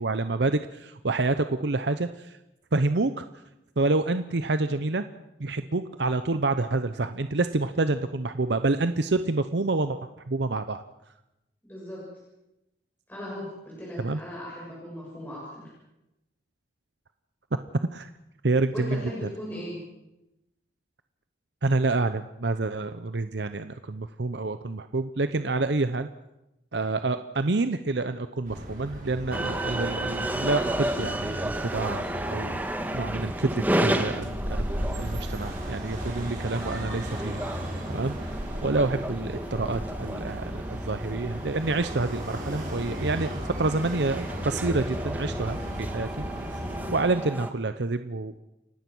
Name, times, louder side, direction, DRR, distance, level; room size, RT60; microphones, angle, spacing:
voice 1, 0.0-2.4 2.7-3.2 3.8-5.0 5.4-10.0 10.3-10.8 14.0-14.2 17.9-18.1 18.4-19.0 21.6-26.1 26.7-32.6 32.9-37.4 37.9-46.1 46.9-48.4, right 3 dB, 70° right, 10 dB, 0.8 m, -28 dB
voice 2, 11.6-12.0 13.1-15.6 18.7-19.8 46.2-46.4, equal, 10° left, -6 dB, 7.0 m, -38 dB
sound 1, 28.4-46.9, equal, 45° right, 5.7 m, -36 dB
sound 2, 29.3-47.5, right 1 dB, 10° right, 1.5 m, -33 dB
29.5 x 16.5 x 6.2 m, 0.91 s
head